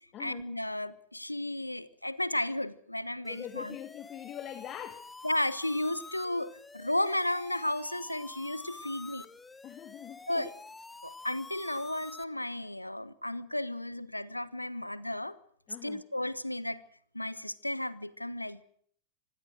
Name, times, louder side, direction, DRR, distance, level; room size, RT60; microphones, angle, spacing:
voice 1, 0.2-3.8 5.2-9.3 10.3-10.5 11.0-15.4 15.8-16.8 17.1-18.6, left 1 dB, 85° left, 18 dB, 1.0 m, -33 dB
sound 1, 3.2-12.2, left 3 dB, 10° left, 1.1 m, -48 dB
voice 2, 3.3-5.1 9.6-10.5 15.7-16.0, left 11 dB, 35° left, 10 dB, 1.6 m, -43 dB
25.5 x 19.5 x 6.4 m, 0.64 s
figure-of-eight pair, 90°, 0 cm